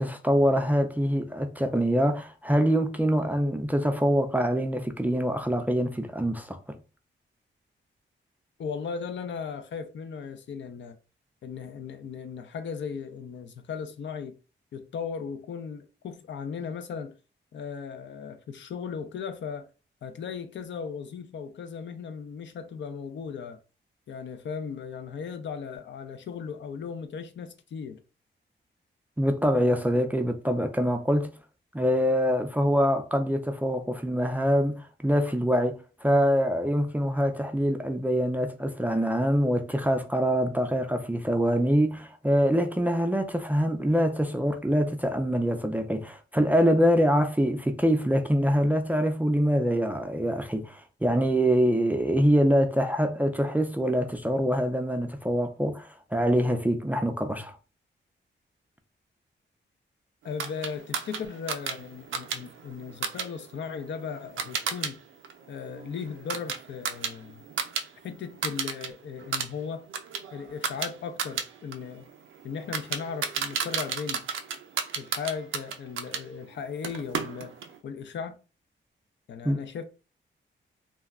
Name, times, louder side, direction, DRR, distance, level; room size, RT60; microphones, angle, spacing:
voice 1, 0.0-6.8 29.2-31.3 31.7-57.6 79.4-79.6, equal, 10° right, 0.3 m, -25 dB
voice 2, 8.6-11.0 11.4-14.4 14.7-17.2 17.5-19.7 20.0-23.6 24.1-28.0 60.2-65.0 65.5-67.4 68.0-69.8 70.3-72.1 72.4-74.3 74.9-77.5 77.8-78.4 79.3-79.8, left 6 dB, 70° left, 0.5 m, -37 dB
sound 1, 60.4-64.9 65.2-67.9 68.1-68.9 69.2-76.2 76.8-77.7, right 6 dB, 85° right, 0.4 m, -33 dB
2.3 x 2.1 x 3.4 m
wide cardioid pair, 115°, 20 cm